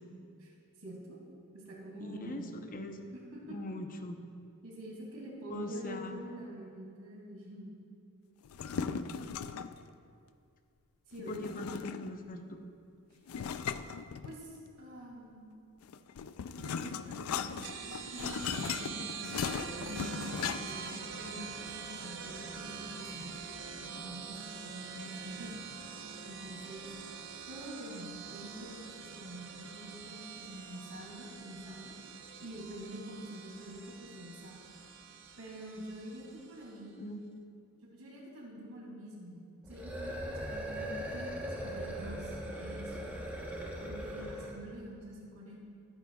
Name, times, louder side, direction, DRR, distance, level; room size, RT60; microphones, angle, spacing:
voice 1, 0.8-1.2 1.5-2.5 3.3-3.6 4.6-7.7 8.8-9.2 11.1-11.7 14.2-15.5 16.5-23.4 23.8-25.6 26.2-26.9 27.5-31.9 32.4-34.6 35.4-37.0 37.8-43.1 43.8-45.6, right 1 dB, 75° right, -3 dB, 2.7 m, -46 dB
voice 2, 2.0-3.1 3.5-4.2 5.5-6.2 11.2-12.6 37.0-37.3, left 1 dB, 40° left, 5 dB, 0.7 m, -41 dB
sound 1, 8.4-9.8 11.3-12.3 13.3-14.7 15.8-20.9, left 7 dB, 70° left, 0.4 m, -38 dB
sound 2, 17.6-36.8, right 6 dB, 55° right, 0.7 m, -45 dB
sound 3, 39.6-44.7, equal, 10° right, 1.0 m, -39 dB
16.5 x 9.4 x 2.3 m, 2.4 s
head